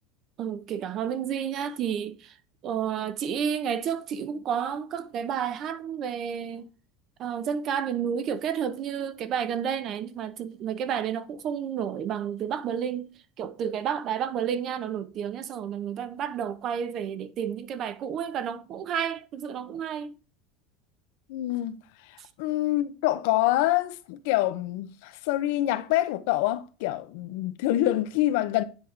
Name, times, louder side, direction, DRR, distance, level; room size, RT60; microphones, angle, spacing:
voice 1, 0.4-2.4 2.6-6.7 7.2-13.1 13.4-20.1 22.2-22.3, right 8 dB, 40° right, 0.7 m, -31 dB
voice 2, 21.3-21.8 22.1-28.6, left 15 dB, 70° left, 0.6 m, -26 dB
9.8 x 3.6 x 3.3 m
supercardioid pair, 130°, 0 cm